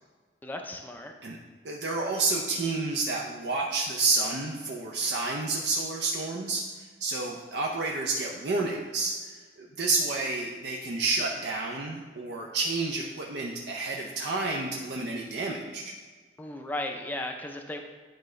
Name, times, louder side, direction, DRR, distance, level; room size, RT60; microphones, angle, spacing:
voice 1, 0.4-1.1 16.4-17.8, left 1 dB, 10° left, 3 dB, 0.4 m, -35 dB
voice 2, 1.6-9.1 9.8-15.9, right 3 dB, 70° right, -1 dB, 0.6 m, -30 dB
10.5 x 3.8 x 3.2 m, 1.4 s
head